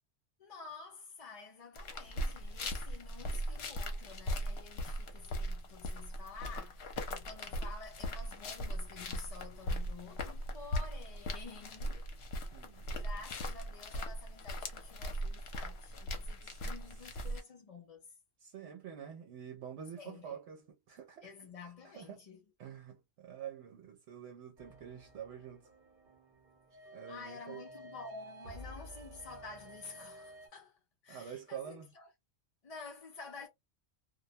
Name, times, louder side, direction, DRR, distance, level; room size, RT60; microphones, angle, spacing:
voice 1, 0.4-12.1 12.9-18.1 20.0-20.4 21.2-22.4 27.1-30.8 31.0-32.1 32.6-33.5, left 4 dB, 50° left, 0.4 m, -50 dB
sound 1, 1.7-17.4, equal, 70° left, 0.9 m, -39 dB
voice 2, 12.5-12.9 16.4-16.6 18.4-21.3 22.0-22.2 22.6-25.7 26.9-27.6 31.1-31.9, right 8 dB, 80° right, 0.9 m, -47 dB
sound 2, 24.6-30.5, equal, 50° right, 0.8 m, -52 dB
2.3 x 2.1 x 2.7 m
omnidirectional pair, 1.2 m